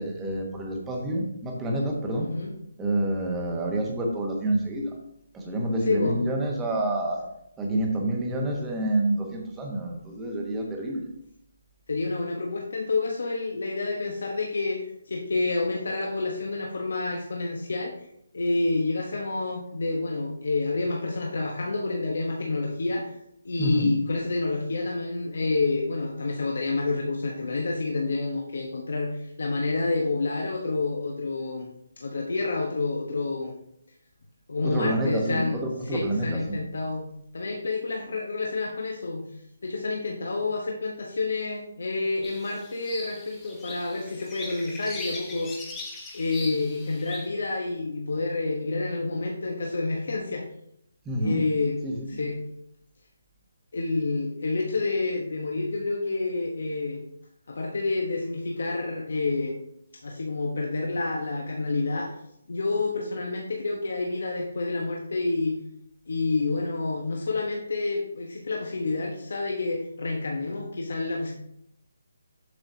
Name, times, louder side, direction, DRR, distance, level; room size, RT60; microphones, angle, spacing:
voice 1, 0.0-2.3 2.8-5.0 5.3-7.3 7.6-11.1 23.6-23.9 34.6-36.6 51.0-51.4 51.8-52.3, right 1 dB, 10° right, 0 dB, 1.1 m, -28 dB
voice 2, 2.2-2.5 5.9-6.2 11.9-17.9 18.3-23.1 23.4-31.7 32.0-33.6 34.5-35.6 35.9-37.1 37.3-39.3 39.6-45.5 46.1-50.4 51.2-51.8 52.1-52.4 53.7-57.0 57.5-59.5 60.0-62.1 62.5-65.6 66.1-71.3, left 3 dB, 70° left, 0 dB, 1.0 m, -28 dB
sound 1, 42.2-47.3, left 3 dB, 10° left, 0.9 m, -40 dB
7.6 x 5.7 x 2.7 m, 0.76 s
hypercardioid pair, 165°, 0 cm